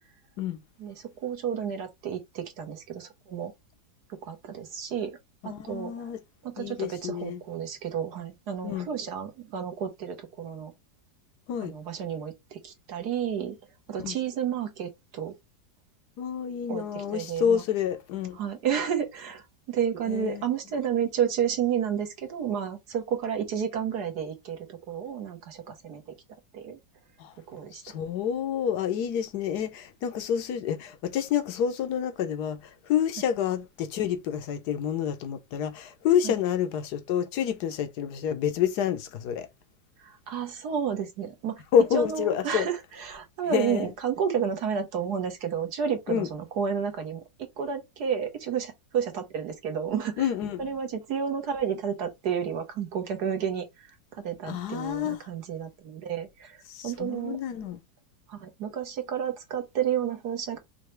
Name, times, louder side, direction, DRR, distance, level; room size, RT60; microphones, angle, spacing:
voice 1, 0.8-3.5 4.2-5.1 5.4-6.1 6.4-10.7 11.6-13.6 13.9-15.3 16.7-17.6 18.4-26.0 26.5-26.8 27.5-28.0 36.2-36.3 40.0-41.6 41.9-47.2 47.6-50.2 50.6-57.4 58.3-60.6, right 8 dB, 60° right, 1.5 m, -31 dB
voice 2, 5.4-6.2 6.6-7.4 8.6-8.9 11.5-11.7 14.0-14.2 16.2-18.4 20.1-20.4 27.2-27.3 27.8-39.5 41.7-42.7 43.5-43.9 46.1-46.3 50.2-50.7 54.4-55.2 56.7-57.8, left 8 dB, 65° left, 1.3 m, -28 dB
5.6 x 2.9 x 3.1 m
omnidirectional pair, 2.0 m